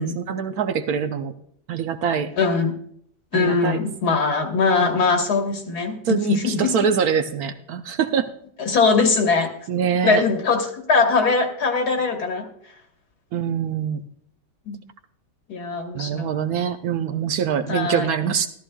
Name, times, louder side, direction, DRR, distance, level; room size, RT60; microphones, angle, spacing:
voice 1, 0.0-1.3 1.7-2.3 3.3-3.9 6.1-8.3 9.7-10.2 13.3-14.0 15.9-18.5, right 7 dB, 70° right, 8 dB, 1.0 m, -24 dB
voice 2, 2.4-2.8 3.3-6.7 8.6-9.5 10.0-12.5 14.7-14.8 15.5-16.3 17.7-18.1, left 4 dB, 65° left, 3 dB, 1.9 m, -21 dB
13.5 x 13.5 x 2.2 m, 0.67 s
omnidirectional pair, 1.8 m